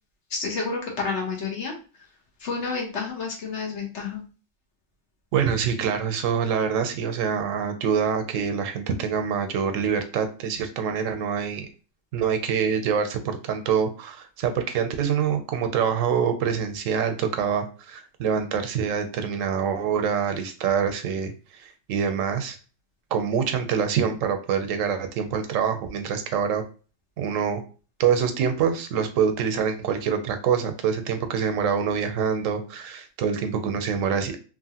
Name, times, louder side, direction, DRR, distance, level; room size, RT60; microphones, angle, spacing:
voice 1, 0.3-1.7 2.4-4.2, left 4 dB, 65° left, 0 dB, 1.2 m, -30 dB
voice 2, 5.3-11.7 12.1-22.6 23.1-26.6 27.2-27.6 28.0-34.4, right 7 dB, 85° right, 7 dB, 1.0 m, -25 dB
3.0 x 2.5 x 2.7 m, 0.36 s
omnidirectional pair, 1.3 m